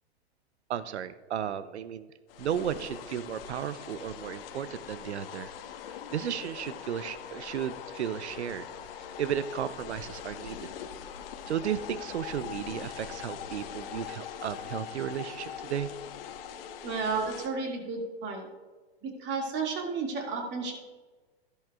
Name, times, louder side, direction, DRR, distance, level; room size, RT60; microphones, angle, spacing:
voice 1, 0.7-2.1 2.4-5.5 5.9-8.7 9.2-10.7 11.5-15.9, right 9 dB, 80° right, 14 dB, 0.7 m, -34 dB
sound 1, 2.3-17.5, left 8 dB, 60° left, 1.1 m, -42 dB
voice 2, 16.8-18.5 19.0-20.7, right 4 dB, 35° right, 1 dB, 2.2 m, -32 dB
14.0 x 11.5 x 2.4 m, 1.3 s
hypercardioid pair, 110°, 33 cm